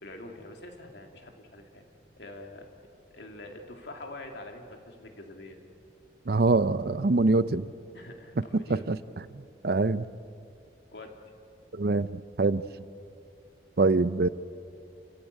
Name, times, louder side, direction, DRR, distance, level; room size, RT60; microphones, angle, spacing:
voice 1, 0.0-1.8 2.2-2.7 3.1-5.6 7.9-8.8 10.9-11.2, left 2 dB, 75° left, 3 dB, 2.7 m, -45 dB
voice 2, 6.3-7.7 8.7-9.0 9.3-10.1 11.7-12.6 13.8-14.3, right 3 dB, 60° right, 16 dB, 0.6 m, -24 dB
28.5 x 15.5 x 8.2 m, 2.6 s
head